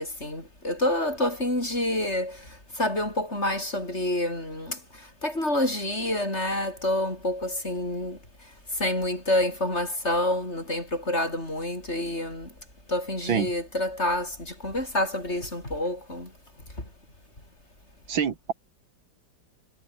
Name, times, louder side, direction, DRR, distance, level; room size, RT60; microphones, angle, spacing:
voice 1, 0.0-2.5 2.8-4.8 5.2-8.2 8.8-12.5 12.9-16.3, left 1 dB, 35° left, 8.2 m, -28 dB
voice 2, 18.1-18.5, right 7 dB, 80° right, 2.6 m, -26 dB
omnidirectional pair, 2.1 m